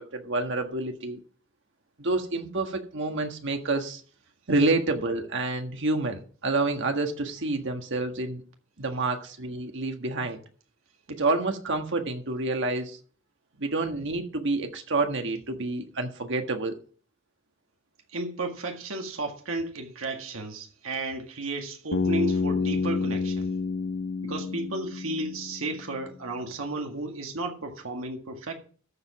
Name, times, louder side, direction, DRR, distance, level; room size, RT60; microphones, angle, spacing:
voice 1, 0.1-1.2 2.0-4.0 4.5-8.4 8.8-10.4 11.1-13.0 13.6-16.7, right 2 dB, 65° right, 1.6 m, -28 dB
voice 2, 18.1-23.5 24.2-28.5, right 2 dB, 80° right, 1.9 m, -33 dB
Bass guitar, 21.9-25.9, left 4 dB, 65° left, 1.0 m, -29 dB
13.5 x 5.2 x 6.0 m
head